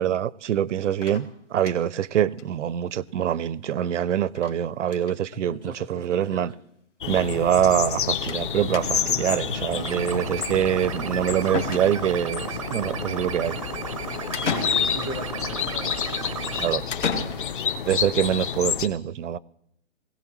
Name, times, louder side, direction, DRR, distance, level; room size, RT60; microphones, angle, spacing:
voice 1, 0.0-6.5 7.1-13.6 16.6-16.8 17.9-19.4, right 10 dB, 75° right, 0.6 m, -25 dB
sound 1, 1.0-2.0 2.4-2.5 2.8-2.9 3.1-3.2 4.4-4.6 4.8-5.2 6.1-6.2 6.4-6.5 8.3-8.5 8.7-9.2 11.0-11.1 11.5-12.3 14.3-15.2 16.9-17.8, left 5 dB, 75° left, 2.1 m, -32 dB
voice 2, 5.3-6.5 14.3-16.0 16.9-17.0, left 2 dB, 15° left, 0.6 m, -37 dB
sound 2, 7.0-18.9, left 8 dB, 45° left, 0.8 m, -29 dB
sound 3, 8.7-16.7, right 6 dB, 30° right, 0.5 m, -35 dB
20.5 x 16.5 x 3.1 m
hypercardioid pair, 160°, 37 cm